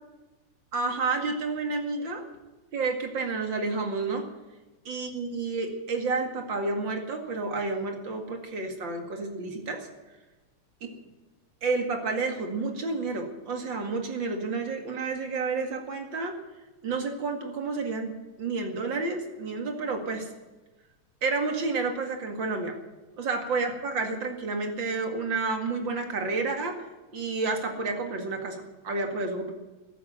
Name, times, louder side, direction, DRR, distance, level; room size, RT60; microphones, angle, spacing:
voice 1, 0.7-2.2 2.7-4.3 4.9-9.9 11.6-16.3 16.8-20.3 21.2-22.8 23.2-26.8 27.1-29.5, right 3 dB, 45° right, 4 dB, 2.5 m, -30 dB
14.5 x 11.0 x 9.1 m, 1.1 s
omnidirectional pair, 3.3 m